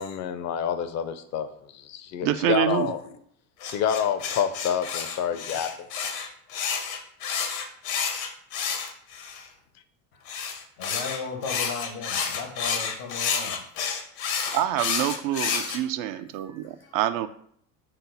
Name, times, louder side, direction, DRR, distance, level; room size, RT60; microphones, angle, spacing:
voice 1, 0.0-3.0 3.7-5.9, left 8 dB, 40° left, 10 dB, 0.5 m, -28 dB
voice 2, 2.2-2.9 14.5-17.3, right 12 dB, 50° right, 12 dB, 0.4 m, -26 dB
sound 1, 3.6-9.4 10.3-15.8, left 6 dB, 70° left, 0.8 m, -30 dB
voice 3, 10.8-13.6 15.5-15.7 16.5-16.6, left 4 dB, 85° left, 2 dB, 1.3 m, -35 dB
5.6 x 2.0 x 3.9 m, 0.66 s
hypercardioid pair, 80°, 44 cm